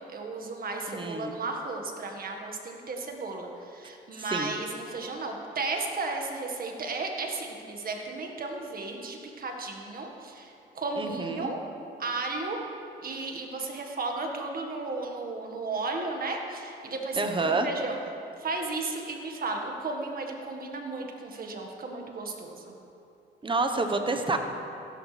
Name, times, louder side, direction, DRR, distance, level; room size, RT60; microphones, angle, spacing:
voice 1, 0.0-11.6 12.0-12.6 13.0-18.0 18.4-22.7, right 3 dB, 45° right, 2 dB, 1.7 m, -34 dB
voice 2, 0.9-1.3 4.2-4.5 11.0-11.5 17.1-17.7 23.4-24.4, right 3 dB, 25° right, 5 dB, 1.1 m, -28 dB
15.5 x 12.0 x 3.4 m, 2.7 s
cardioid pair, 90°, 20 cm